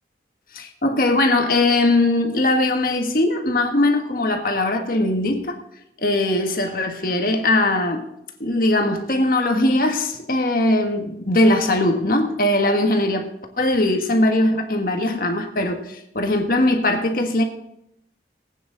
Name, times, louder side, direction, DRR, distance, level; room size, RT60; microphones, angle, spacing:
voice 1, 0.5-5.6 6.0-8.0 8.4-13.3 13.6-17.4, left 1 dB, 50° left, 4 dB, 1.6 m, -20 dB
18.0 x 9.1 x 4.0 m, 0.80 s
head